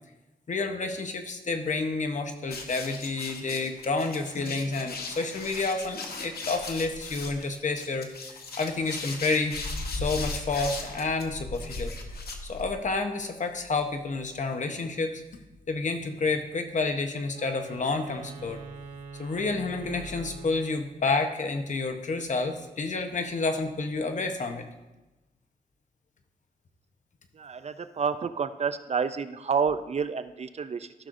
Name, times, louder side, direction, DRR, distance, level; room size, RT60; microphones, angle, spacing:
voice 1, 0.5-8.1 8.6-9.6 9.9-11.9 12.4-15.2 15.7-18.6 19.2-24.6, left 3 dB, 55° left, 6 dB, 0.9 m, -29 dB
sound 1, 2.5-12.9, left 3 dB, 90° left, 1.0 m, -37 dB
Wind instrument woodwind instrument, 17.3-21.0, right 5 dB, 65° right, 1.4 m, -44 dB
voice 2, 27.3-30.9, right 6 dB, 45° right, 11 dB, 0.4 m, -29 dB
14.0 x 6.1 x 2.6 m, 1.1 s
wide cardioid pair, 115°, 16 cm